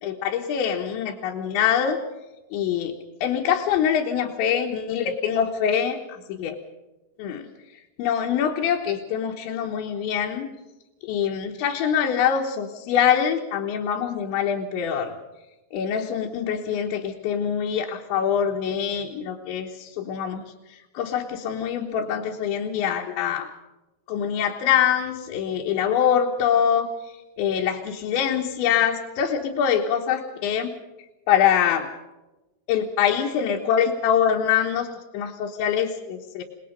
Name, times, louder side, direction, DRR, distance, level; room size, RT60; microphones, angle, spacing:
voice 1, 0.0-2.0 2.5-2.9 3.2-6.6 7.2-7.5 8.0-10.5 11.0-15.1 15.7-23.5 24.1-30.7 31.3-31.9 32.7-34.9 35.1-36.4, left 8 dB, 80° left, 0 dB, 3.6 m, -24 dB
28.5 x 19.5 x 5.2 m, 1.1 s
omnidirectional pair, 5.3 m